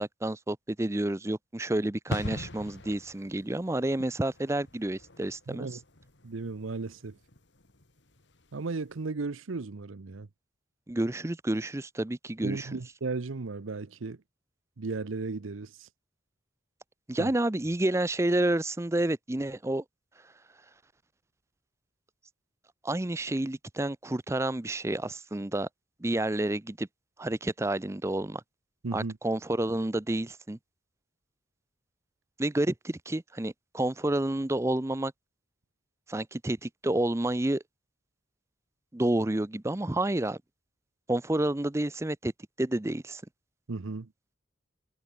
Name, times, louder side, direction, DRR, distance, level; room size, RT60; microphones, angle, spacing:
voice 1, 0.0-5.7 10.9-12.7 17.1-19.8 22.8-25.7 26.0-26.9 27.2-28.4 28.9-30.6 32.4-35.1 36.1-37.6 38.9-40.4 41.1-42.3 42.6-43.2, right 1 dB, 15° right, 0.5 m, -29 dB
sound 1, 2.1-8.6 8.9-9.0, left 1 dB, 65° left, 2.6 m, -42 dB
voice 2, 5.5-5.8 6.2-7.2 8.5-10.3 12.4-14.2 14.8-15.9 17.2-17.3 28.8-29.2 43.7-44.1, right 3 dB, 90° right, 0.8 m, -35 dB
head